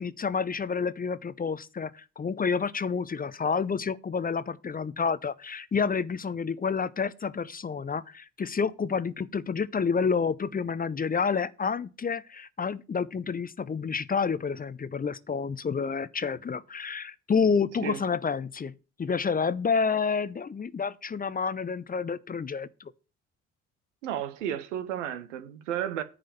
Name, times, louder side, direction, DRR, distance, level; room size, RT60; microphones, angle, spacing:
voice 1, 0.0-18.7 19.0-22.9, left 5 dB, 25° left, 0.7 m, -29 dB
voice 2, 24.0-26.0, right 10 dB, 75° right, 1.0 m, -32 dB
9.8 x 5.0 x 7.0 m
figure-of-eight pair, 50°, 37 cm